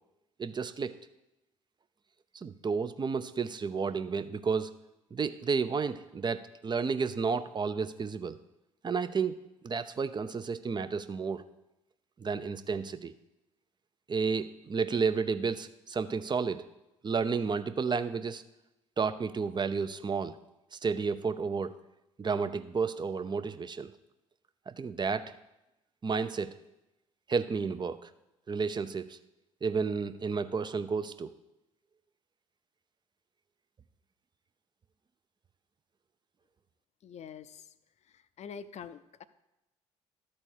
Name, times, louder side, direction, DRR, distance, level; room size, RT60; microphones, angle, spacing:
voice 1, 0.4-1.0 2.3-4.8 5.1-8.4 8.8-9.4 9.6-11.4 12.2-13.1 14.1-16.7 17.0-18.4 19.0-20.4 20.7-21.8 22.2-23.9 24.7-25.3 26.0-26.6 27.3-28.1 28.5-29.2 29.6-31.3, right 5 dB, 30° right, 11 dB, 0.7 m, -31 dB
voice 2, 37.0-37.5 38.4-39.2, left 7 dB, 50° left, 13 dB, 0.6 m, -44 dB
12.5 x 4.3 x 6.4 m, 0.94 s
hypercardioid pair, 50°, 15 cm